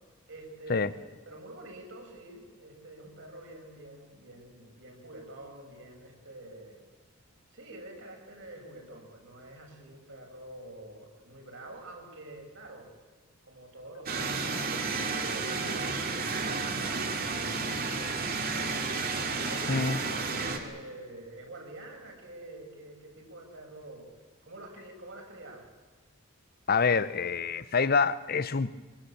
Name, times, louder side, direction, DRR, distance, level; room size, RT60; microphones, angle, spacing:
voice 1, 0.3-6.8 7.5-12.9 13.4-18.3 19.2-24.1 24.4-25.7, right 1 dB, 60° right, 6.5 m, -47 dB
sound 1, 14.1-20.6, right 4 dB, 45° right, 2.5 m, -31 dB
voice 2, 26.7-28.7, left 5 dB, 45° left, 0.7 m, -26 dB
24.0 x 20.0 x 8.6 m
head